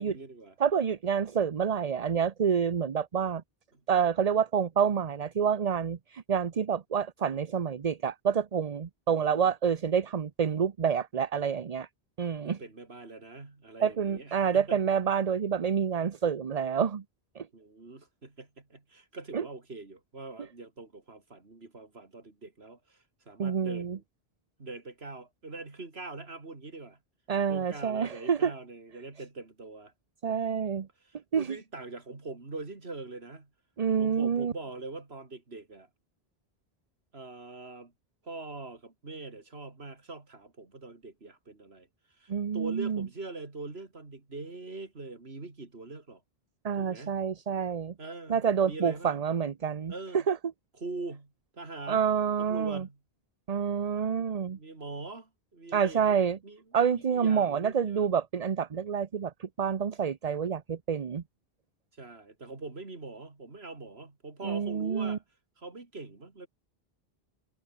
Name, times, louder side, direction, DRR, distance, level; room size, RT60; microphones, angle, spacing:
voice 1, 0.0-0.5 3.7-3.8 9.1-9.5 12.4-14.8 17.5-24.0 24.6-27.0 27.5-29.9 31.0-33.5 34.0-35.9 37.1-37.9 38.2-41.9 42.2-46.2 46.7-47.2 48.0-49.2 49.9-50.3 50.8-52.0 52.4-53.0 54.6-58.1 62.0-65.2 65.6-66.5, right 3 dB, 80° right, 3.3 m, -43 dB
voice 2, 0.6-3.4 3.9-11.9 12.2-12.6 13.8-17.0 17.4-17.5 19.3-19.4 23.4-24.0 27.3-28.5 30.2-30.9 31.3-31.6 33.8-34.5 42.3-43.1 46.6-47.9 48.3-50.4 51.9-52.9 53.5-54.6 55.7-56.4 56.7-61.2 64.4-65.2, right 7 dB, 40° right, 0.8 m, -28 dB
omnidirectional pair, 1.1 m